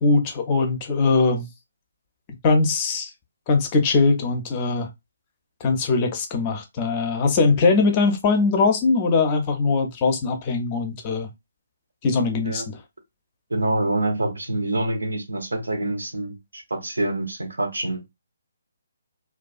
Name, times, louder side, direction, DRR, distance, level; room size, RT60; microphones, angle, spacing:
voice 1, 0.0-1.5 2.4-3.1 3.5-4.9 5.6-11.3 12.0-12.8, left 4 dB, 25° left, 0.5 m, -21 dB
voice 2, 13.5-18.0, right 2 dB, 65° right, 0.7 m, -26 dB
2.3 x 2.3 x 2.3 m
figure-of-eight pair, 140°, 0 cm